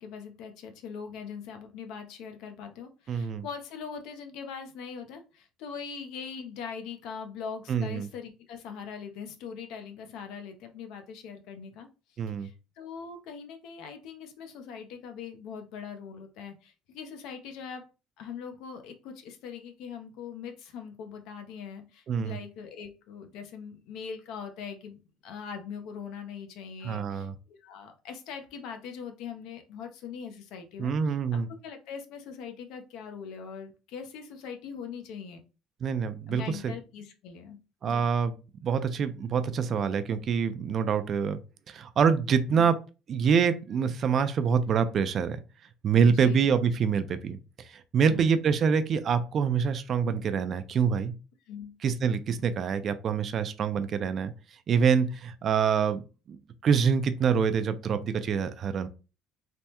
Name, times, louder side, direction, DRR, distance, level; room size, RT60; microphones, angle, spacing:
voice 1, 0.0-11.9 12.4-17.9 18.2-35.4 36.3-37.6 37.9-38.0 42.5-42.7 46.0-46.5 48.0-48.3 51.5-51.7, left 6 dB, 70° left, 0.6 m, -41 dB
voice 2, 3.1-3.4 7.7-8.1 12.2-12.5 22.1-22.4 26.8-27.3 30.8-31.5 35.8-36.7 37.8-38.4 38.6-41.4 41.7-42.7 43.1-45.4 45.8-47.4 47.7-51.1 51.8-54.3 54.7-56.0 56.3-58.9, right 6 dB, 35° right, 0.3 m, -26 dB
3.3 x 2.0 x 2.8 m
cardioid pair, 140°, 0 cm